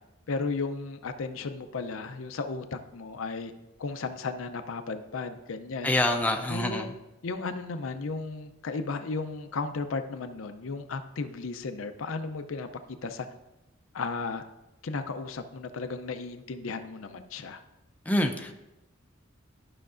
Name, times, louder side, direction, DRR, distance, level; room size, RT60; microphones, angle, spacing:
voice 1, 0.3-3.5 3.8-5.9 6.5-6.9 7.2-12.7 13.0-13.3 13.9-14.4 14.8-17.6, left 4 dB, 75° left, 8 dB, 0.5 m, -34 dB
voice 2, 5.8-6.9 18.1-18.5, left 1 dB, 10° left, 4 dB, 0.5 m, -26 dB
12.0 x 5.7 x 2.5 m, 0.97 s
head